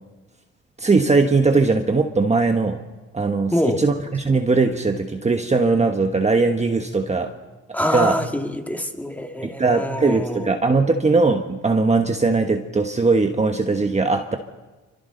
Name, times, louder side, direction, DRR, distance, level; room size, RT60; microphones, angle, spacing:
voice 1, 0.8-2.8 3.1-3.5 3.8-7.3 7.9-8.1 9.4-14.4, right 3 dB, 20° right, 5 dB, 1.3 m, -19 dB
voice 2, 3.5-3.8 7.7-10.5, equal, 5° left, 4 dB, 2.2 m, -25 dB
28.0 x 25.0 x 4.0 m, 1.2 s
cardioid pair, 90°, 30 cm